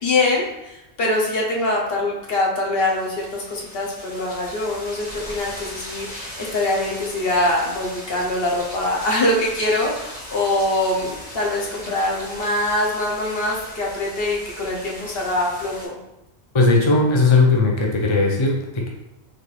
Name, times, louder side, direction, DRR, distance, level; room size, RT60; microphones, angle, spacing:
voice 1, 0.0-16.0, left 1 dB, 65° left, -2 dB, 1.0 m, -23 dB
sound 1, 2.8-15.9, left 1 dB, 80° left, 2.1 m, -38 dB
voice 2, 16.5-18.9, left 3 dB, 35° left, -1 dB, 0.6 m, -17 dB
4.1 x 3.2 x 3.2 m, 0.91 s
omnidirectional pair, 1.1 m